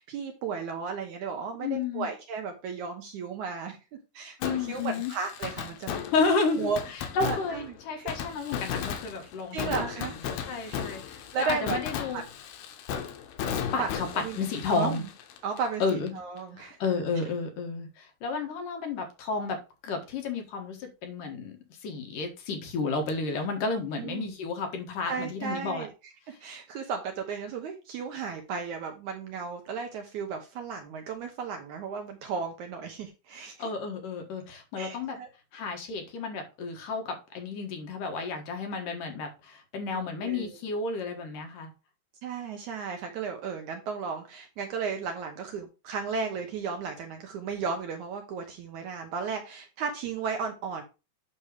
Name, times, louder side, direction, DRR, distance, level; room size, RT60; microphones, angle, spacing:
voice 1, 0.0-3.8 4.1-6.0 6.6-6.8 7.2-8.1 9.5-10.4 10.7-10.8 11.3-11.8 12.1-12.2 13.8-13.9 14.1-14.5 14.8-15.1 15.4-16.8 24.0-24.3 25.1-33.7 34.8-35.3 39.9-40.6 42.2-50.8, right 5 dB, 70° right, 4 dB, 2.0 m, -34 dB
voice 2, 1.6-2.1 4.4-5.1 6.1-9.7 10.5-12.2 13.7-15.0 15.8-16.1 16.5-19.6 19.8-21.6 21.8-25.9 33.6-35.2 35.5-41.7, left 4 dB, 65° left, 4 dB, 2.9 m, -31 dB
Fireworks, 4.4-16.1 16.4-16.5 23.1-23.2, left 8 dB, 80° left, 2.8 m, -36 dB
9.0 x 3.0 x 6.5 m, 0.29 s
omnidirectional pair, 4.3 m